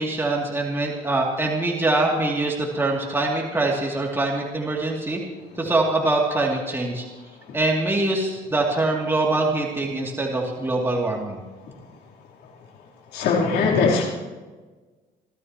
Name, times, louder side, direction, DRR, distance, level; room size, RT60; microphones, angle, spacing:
voice 1, 0.0-5.2 5.6-7.1 7.5-11.4, right 2 dB, 15° right, -2 dB, 2.6 m, -23 dB
voice 2, 13.1-14.1, left 4 dB, 80° left, -3 dB, 3.6 m, -20 dB
29.0 x 13.0 x 3.0 m, 1.3 s
cardioid pair, 110°, 17 cm